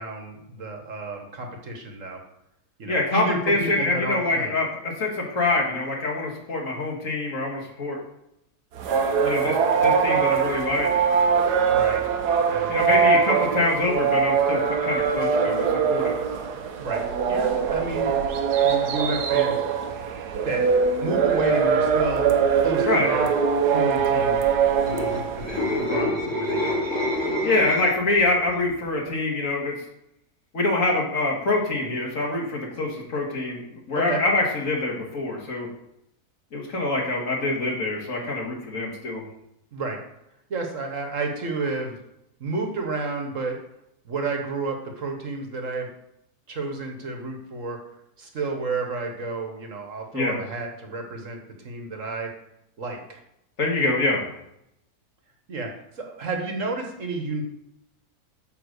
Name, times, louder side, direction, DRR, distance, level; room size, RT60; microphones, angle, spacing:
voice 1, 0.0-2.2 2.8-4.6 11.7-12.1 12.5-13.2 16.8-18.2 18.6-19.6 20.4-20.6 21.0-23.3 23.7-24.4 24.8-27.1 33.9-34.2 39.7-40.0 40.5-42.0 42.4-43.6 44.0-45.9 46.5-47.8 48.2-52.3 52.8-53.2 55.5-55.7 56.0-57.4, right 3 dB, 55° right, 2 dB, 1.6 m, -31 dB
voice 2, 2.9-8.0 9.2-9.6 9.8-11.0 12.7-16.1 22.8-23.1 27.4-29.7 30.5-35.7 36.5-39.2 50.1-50.4 53.6-54.3, left 2 dB, 55° left, -2 dB, 2.2 m, -25 dB
sound 1, 8.8-25.8, right 6 dB, 90° right, 1.4 m, -22 dB
sound 2, 24.7-28.1 28.5-28.8, left 1 dB, 15° left, 2.9 m, -27 dB
9.1 x 4.0 x 6.5 m, 0.81 s
omnidirectional pair, 1.6 m